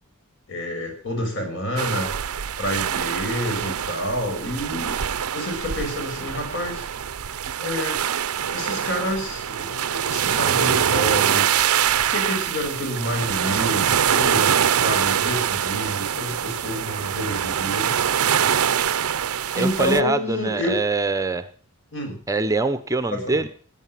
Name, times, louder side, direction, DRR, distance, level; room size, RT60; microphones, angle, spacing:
voice 1, 0.5-2.1 2.6-5.0 5.3-6.9 7.6-8.0 8.5-11.5 12.1-17.9 19.5-20.7 21.9-22.2 23.1-23.4, equal, 55° left, 3 dB, 6.4 m, -28 dB
sound 1, 1.8-20.0, right 9 dB, 85° right, 0.6 m, -24 dB
voice 2, 19.5-21.5 22.3-23.5, right 3 dB, 15° right, 11 dB, 0.8 m, -24 dB
16.5 x 9.2 x 7.4 m, 0.43 s
head